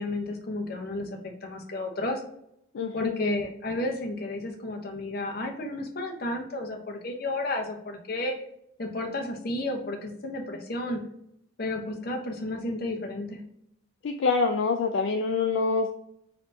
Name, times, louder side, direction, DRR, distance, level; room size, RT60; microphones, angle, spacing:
voice 1, 0.0-2.2 2.9-8.3 8.8-11.0 11.6-13.4, left 2 dB, 45° left, 2 dB, 0.8 m, -32 dB
voice 2, 2.7-3.2 14.0-15.9, left 4 dB, 65° left, 5 dB, 0.3 m, -26 dB
4.4 x 2.6 x 3.8 m, 0.75 s
head